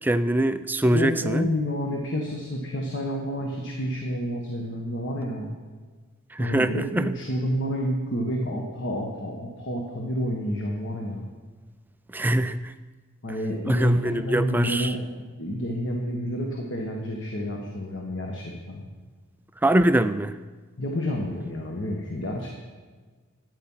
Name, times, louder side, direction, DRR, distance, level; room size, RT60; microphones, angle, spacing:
voice 1, 0.0-1.5 6.3-7.2 12.1-12.7 13.7-15.0 19.6-20.4, right 1 dB, 10° right, 11 dB, 0.3 m, -23 dB
voice 2, 0.9-5.5 6.4-11.2 13.2-15.0 15.4-18.8 20.8-22.5, equal, 55° left, 0 dB, 1.5 m, -29 dB
13.0 x 9.3 x 5.6 m, 1.4 s
head